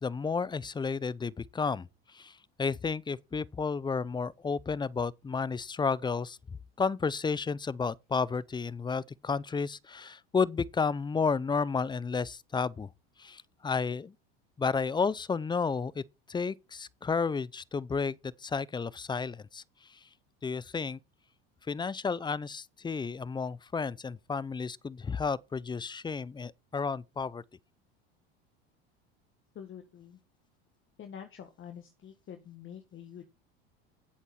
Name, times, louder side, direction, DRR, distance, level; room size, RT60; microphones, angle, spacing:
voice 1, 0.0-1.9 2.1-6.4 6.8-12.9 13.2-14.1 14.6-16.0 16.3-19.6 20.4-21.0 21.7-27.4, left 5 dB, 15° left, 0.5 m, -32 dB
voice 2, 29.5-30.2 31.0-33.3, left 8 dB, 40° left, 1.7 m, -46 dB
10.0 x 8.2 x 4.3 m
hypercardioid pair, 85°, 31 cm